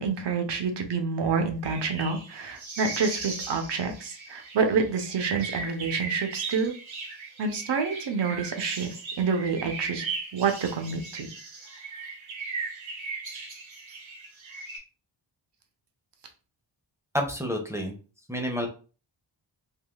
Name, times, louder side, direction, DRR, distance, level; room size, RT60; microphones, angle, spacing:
voice 1, 0.0-6.7 7.4-10.1 10.3-11.3, right 5 dB, 65° right, 5 dB, 0.8 m, -28 dB
sound 1, 1.6-14.8, right 4 dB, 85° right, 1.1 m, -37 dB
voice 2, 17.1-17.9 18.3-18.7, equal, 5° right, 2 dB, 0.6 m, -29 dB
3.6 x 2.4 x 2.3 m, 0.36 s
wide cardioid pair, 80°, 46 cm